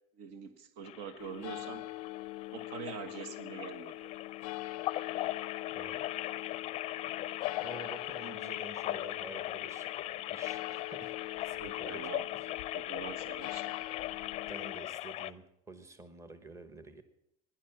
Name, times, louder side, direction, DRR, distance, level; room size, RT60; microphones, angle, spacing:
voice 1, 0.2-1.8 2.5-4.1 11.6-12.3 12.7-13.7, right 7 dB, 70° right, 11 dB, 1.5 m, -44 dB
sound 1, 0.8-15.3, left 15 dB, 35° left, 0.5 m, -39 dB
sound 2, 1.2-14.8, left 19 dB, 85° left, 0.5 m, -44 dB
voice 2, 5.7-6.1 6.4-6.8 7.6-9.9 10.3-12.5 14.5-17.0, right 2 dB, 15° right, 10 dB, 1.2 m, -49 dB
17.0 x 11.0 x 7.3 m, 0.79 s
cardioid pair, 155°, 19 cm